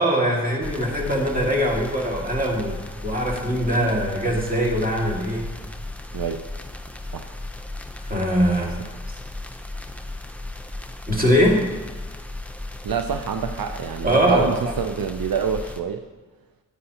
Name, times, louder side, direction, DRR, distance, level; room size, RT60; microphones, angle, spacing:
voice 1, 0.0-5.5 8.0-8.7 11.1-11.6 14.0-14.7, equal, 25° right, -1 dB, 2.0 m, -22 dB
sound 1, 0.6-15.8, left 2 dB, 5° left, 0.7 m, -35 dB
voice 2, 6.1-6.5 7.1-7.3 12.8-16.1, right 7 dB, 75° right, 6 dB, 0.5 m, -27 dB
9.6 x 8.9 x 2.9 m, 1.3 s
cardioid pair, 50°, 36 cm